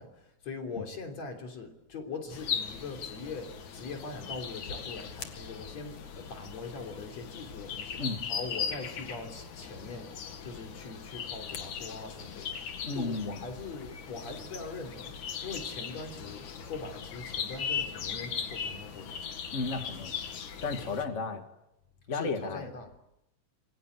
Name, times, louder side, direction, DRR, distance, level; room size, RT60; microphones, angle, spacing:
voice 1, 0.0-8.0 8.3-12.6 12.9-19.1 22.1-23.0, left 3 dB, 60° left, 4 dB, 4.6 m, -42 dB
sound 1, 2.3-21.0, left 7 dB, 80° left, 3.3 m, -39 dB
voice 2, 12.8-13.4 19.5-20.1 20.6-21.4 22.1-22.7, left 3 dB, 25° left, 5 dB, 2.0 m, -33 dB
26.5 x 24.0 x 8.2 m, 0.86 s
omnidirectional pair, 3.4 m